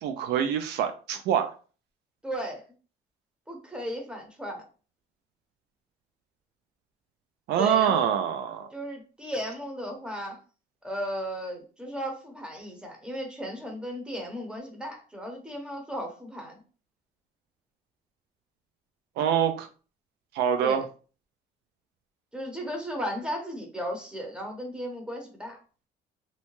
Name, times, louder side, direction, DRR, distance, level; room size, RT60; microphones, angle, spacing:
voice 1, 0.0-1.5 7.5-8.7 19.2-19.7 20.3-20.8, right 9 dB, 80° right, 8 dB, 0.4 m, -25 dB
voice 2, 2.2-2.6 3.5-4.6 7.6-8.0 8.7-10.4 10.8-16.6 20.6-20.8 22.3-25.6, equal, 5° right, 1 dB, 0.8 m, -35 dB
2.7 x 2.1 x 3.0 m, 0.37 s
cardioid pair, 110°, 17 cm